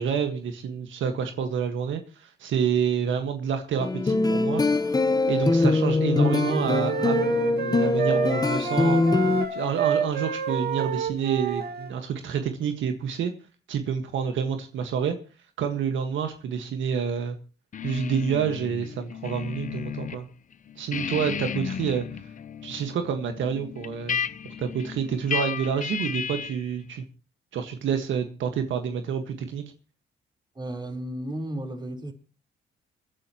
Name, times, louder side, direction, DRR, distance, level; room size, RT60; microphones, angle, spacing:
voice 1, 0.0-4.6 5.3-13.3 13.7-15.2 15.6-17.4 17.8-20.3 20.8-22.0 22.6-24.2 24.6-27.0 27.5-29.6, right 7 dB, 75° right, 1.7 m, -28 dB
sound 1, 3.8-9.5, left 3 dB, 20° left, 1.0 m, -23 dB
sound 2, 6.1-11.9, right 6 dB, 55° right, 2.0 m, -29 dB
sound 3, 17.7-20.2 20.5-26.7, left 7 dB, 40° left, 0.8 m, -34 dB
voice 2, 30.6-32.1, right 1 dB, 20° right, 4.1 m, -33 dB
28.5 x 10.5 x 3.0 m
cardioid pair, 90°, 20 cm